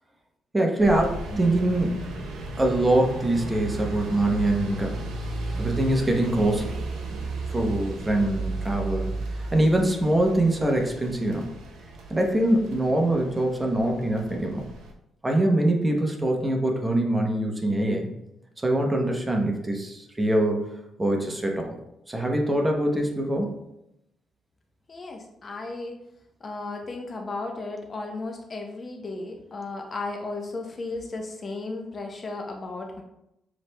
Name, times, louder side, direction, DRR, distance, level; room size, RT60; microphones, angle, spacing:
voice 1, 0.5-1.1 1.3-2.1 2.6-5.0 5.5-7.2 7.5-9.1 9.5-11.4 12.1-14.6 15.2-18.1 18.6-20.7 21.0-21.8 22.1-23.5, right 1 dB, 15° right, 1 dB, 0.8 m, -24 dB
Rain on windowsill and traffic, 0.8-14.9, right 2 dB, 90° right, 0.7 m, -35 dB
voice 2, 24.9-25.9 26.4-33.0, left 3 dB, 35° left, 2 dB, 0.7 m, -35 dB
7.1 x 3.2 x 2.2 m, 0.84 s
cardioid pair, 90°, 0 cm